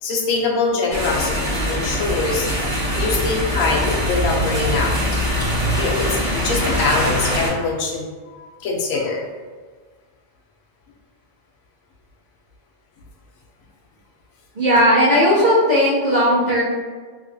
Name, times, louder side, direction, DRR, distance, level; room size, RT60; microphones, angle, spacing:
voice 1, 0.0-5.2 5.8-6.1 6.4-9.2, left 3 dB, 85° left, -1 dB, 1.1 m, -23 dB
sound 1, 0.9-7.5, equal, 15° left, 1.2 m, -22 dB
voice 2, 14.6-16.6, equal, 50° right, -8 dB, 0.6 m, -16 dB
3.0 x 2.8 x 2.6 m, 1.5 s
omnidirectional pair, 1.4 m